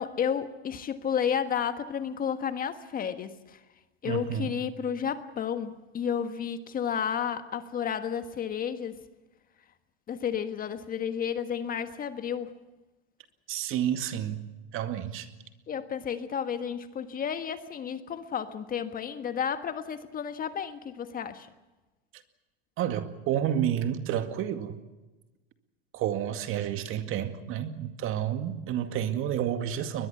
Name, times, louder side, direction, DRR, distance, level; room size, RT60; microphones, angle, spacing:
voice 1, 0.0-3.6 4.0-9.0 10.1-12.5 15.7-21.5, left 8 dB, 30° left, 10 dB, 1.5 m, -32 dB
voice 2, 4.0-4.5 13.5-14.4 14.7-15.3 22.8-24.8 25.9-30.1, right 10 dB, 45° right, 9 dB, 2.1 m, -30 dB
22.0 x 21.5 x 7.1 m, 1.1 s
hypercardioid pair, 110°, 31 cm